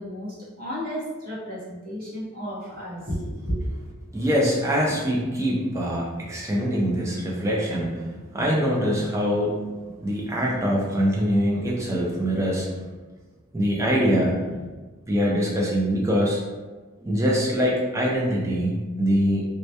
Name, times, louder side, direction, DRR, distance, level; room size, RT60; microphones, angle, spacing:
voice 1, 0.0-3.6, equal, 40° right, -8 dB, 0.8 m, -32 dB
voice 2, 4.1-12.9 13.5-14.7 15.1-16.4 17.0-19.5, equal, 15° right, -3 dB, 0.3 m, -24 dB
2.2 x 2.1 x 2.7 m, 1.3 s
head